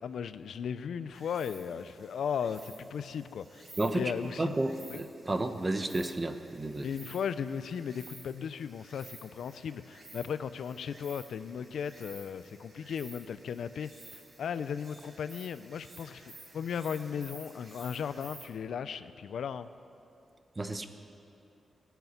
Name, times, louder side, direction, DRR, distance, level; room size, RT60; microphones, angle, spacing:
voice 1, 0.0-3.6 3.9-4.6 4.9-5.0 6.8-19.7, left 7 dB, 80° left, 13 dB, 0.5 m, -36 dB
Insect, 1.1-18.5, right 2 dB, 45° right, 4.5 m, -53 dB
voice 2, 3.8-4.1 4.4-6.9 20.6-20.9, right 2 dB, 25° right, 8 dB, 1.1 m, -32 dB
18.5 x 8.1 x 9.6 m, 2.8 s
cardioid pair, 90°, 0 cm